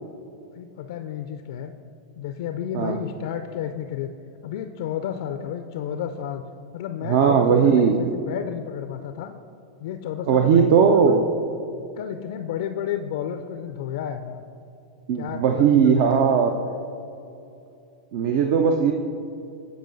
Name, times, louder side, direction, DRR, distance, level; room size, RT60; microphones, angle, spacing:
voice 1, 0.5-1.7 2.2-4.1 4.4-6.4 6.7-9.3 9.8-11.2 12.0-14.4 15.1-16.1, left 9 dB, 60° left, 7 dB, 0.3 m, -31 dB
voice 2, 7.1-7.9 10.3-11.2 15.1-16.6 18.1-18.9, right 7 dB, 55° right, 5 dB, 0.4 m, -18 dB
13.5 x 4.9 x 2.6 m, 2.6 s
figure-of-eight pair, 95°, 3 cm